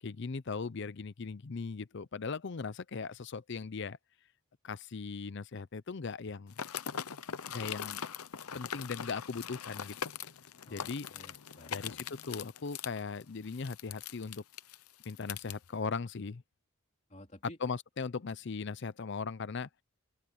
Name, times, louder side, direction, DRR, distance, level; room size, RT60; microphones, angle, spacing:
voice 1, 0.0-4.0 4.6-6.5 7.5-8.1 8.4-10.0 10.7-11.1 11.7-14.4 15.0-16.4 17.6-19.8, left 4 dB, 55° left, 0.6 m, -39 dB
sound 1, 6.5-15.5, left 8 dB, 90° left, 0.8 m, -41 dB
voice 2, 10.7-12.0 17.1-17.6, left 1 dB, 30° left, 3.5 m, -54 dB
open air
head